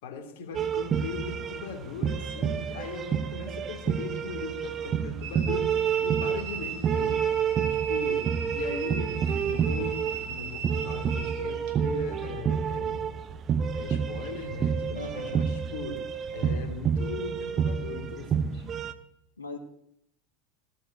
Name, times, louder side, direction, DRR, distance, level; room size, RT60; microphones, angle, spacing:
voice 1, 0.0-7.2 7.7-13.1 13.7-16.0 16.3-18.7, left 5 dB, 60° left, 4 dB, 3.3 m, -39 dB
sound 1, 0.5-18.9, right 7 dB, 35° right, 1.2 m, -29 dB
sound 2, 5.2-11.7, right 5 dB, 60° right, 3.0 m, -38 dB
voice 2, 14.9-15.5 19.4-19.6, left 3 dB, 85° left, 6 dB, 1.7 m, -39 dB
17.5 x 8.7 x 8.9 m, 0.74 s
figure-of-eight pair, 80°, 0 cm